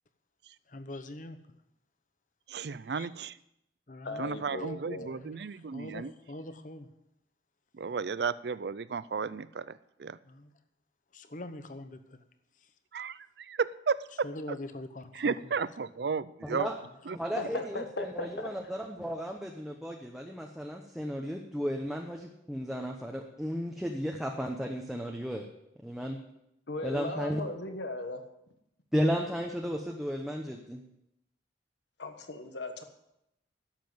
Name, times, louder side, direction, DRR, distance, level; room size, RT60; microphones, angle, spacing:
voice 1, 0.7-1.4 2.9-3.1 3.9-4.2 5.0-5.3 5.7-6.9 10.2-10.5 11.1-12.2 14.2-15.5, left 1 dB, 45° left, 9 dB, 1.0 m, -43 dB
voice 2, 2.5-3.4 4.2-6.1 7.7-10.2 12.9-14.6 15.1-16.2 16.5-16.7 17.1-17.2, right 5 dB, 65° right, 17 dB, 0.5 m, -33 dB
voice 3, 4.0-5.1 17.4-18.5 26.7-28.2 32.0-32.8, left 2 dB, 75° left, 7 dB, 1.4 m, -37 dB
voice 4, 17.1-25.5 25.8-26.2 26.8-27.4 28.9-30.8, equal, ahead, 1 dB, 0.8 m, -34 dB
11.5 x 7.6 x 7.8 m, 0.84 s
head